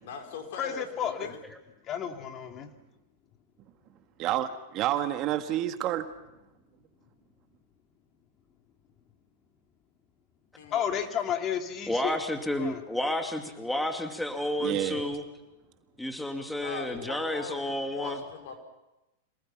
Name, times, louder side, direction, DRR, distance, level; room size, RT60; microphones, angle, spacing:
voice 1, 0.0-1.4 10.5-11.5 16.6-18.6, left 5 dB, 65° left, 3 dB, 5.2 m, -42 dB
voice 2, 0.6-1.3 1.9-2.7 10.7-12.2 12.6-12.8, left 8 dB, 35° left, 5 dB, 2.7 m, -32 dB
voice 3, 4.2-6.1 14.6-15.1, right 12 dB, 45° right, 8 dB, 1.7 m, -29 dB
voice 4, 11.9-15.2 16.0-18.2, left 1 dB, 5° left, 4 dB, 2.6 m, -31 dB
27.0 x 19.5 x 5.9 m, 0.98 s
hypercardioid pair, 110°, 0 cm